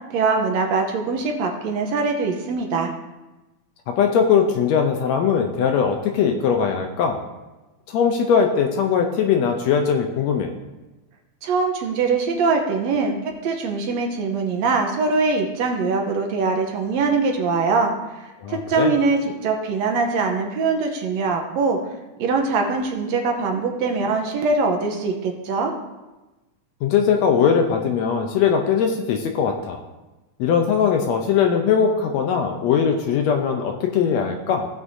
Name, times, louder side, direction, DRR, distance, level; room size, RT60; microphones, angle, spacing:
voice 1, 0.1-2.9 11.4-13.2 13.4-21.8 22.2-25.7, right 4 dB, 70° right, 2 dB, 2.0 m, -22 dB
voice 2, 3.9-7.2 7.9-10.5 18.4-18.9 26.8-29.8 30.4-34.7, left 7 dB, 75° left, 4 dB, 1.7 m, -20 dB
16.5 x 6.0 x 2.7 m, 1.1 s
omnidirectional pair, 3.5 m